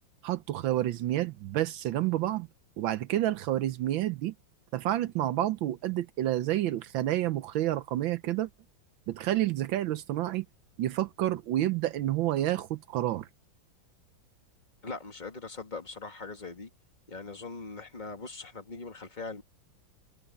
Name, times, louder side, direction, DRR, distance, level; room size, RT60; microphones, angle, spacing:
voice 1, 0.2-2.5 2.8-4.3 4.7-8.5 9.1-10.4 10.8-13.3, right 13 dB, 80° right, 1.5 m, -29 dB
voice 2, 14.8-16.7 17.1-19.4, left 3 dB, 20° left, 2.5 m, -41 dB
omnidirectional pair, 2.1 m